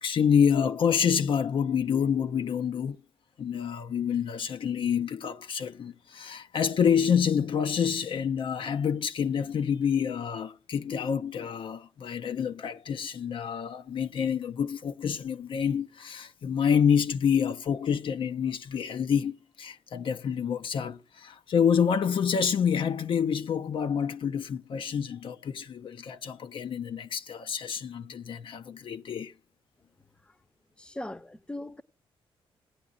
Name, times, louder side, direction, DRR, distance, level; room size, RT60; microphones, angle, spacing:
voice 1, 0.0-3.0 3.4-29.3, left 7 dB, 60° left, 0.6 m, -27 dB
voice 2, 30.8-31.8, left 1 dB, 10° left, 0.7 m, -39 dB
17.5 x 9.6 x 2.4 m
cardioid pair, 90°, 10 cm